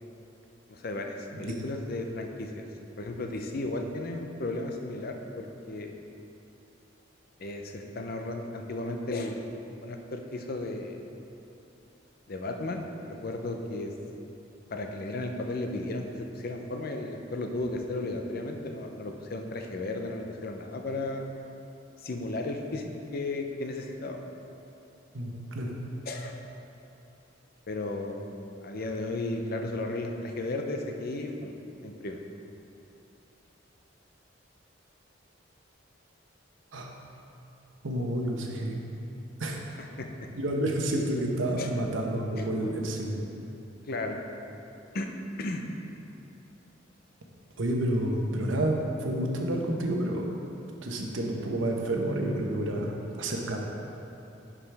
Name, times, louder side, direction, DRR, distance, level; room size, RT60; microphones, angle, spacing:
voice 1, 0.7-2.6 3.0-5.9 7.4-9.4 9.8-11.0 12.3-13.9 14.7-21.3 22.0-24.2 26.1-26.3 27.7-31.5 31.8-32.2 39.8-40.1 41.6-41.8 42.4-42.5 43.9-44.2 44.9-45.1 45.4-45.6, left 2 dB, 50° left, 3 dB, 0.6 m, -34 dB
voice 2, 25.1-25.7 36.7-36.9 37.8-38.8 39.4-39.6 40.3-43.2 47.6-50.3 50.8-53.6, right 1 dB, 85° right, 1 dB, 0.9 m, -29 dB
10.5 x 5.0 x 3.4 m, 2.8 s
head